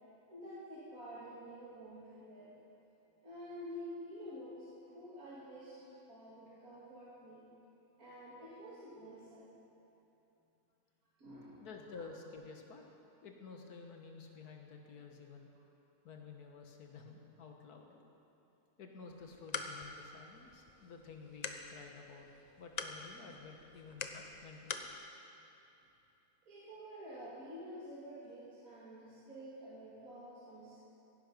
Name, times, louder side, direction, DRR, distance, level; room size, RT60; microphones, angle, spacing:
voice 1, 0.3-2.5 3.2-5.8 6.1-7.4 8.0-9.5 11.2-11.6 11.9-12.0 26.4-30.8, equal, 65° right, -9 dB, 2.5 m, -49 dB
voice 2, 11.6-12.8 13.2-15.5 16.0-18.0 18.8-22.3 22.6-24.9, left 4 dB, 75° left, 2 dB, 1.8 m, -52 dB
sound 1, 19.1-24.9, left 4 dB, 55° left, 0.4 m, -46 dB
16.5 x 10.5 x 5.3 m, 2.9 s
omnidirectional pair, 1.7 m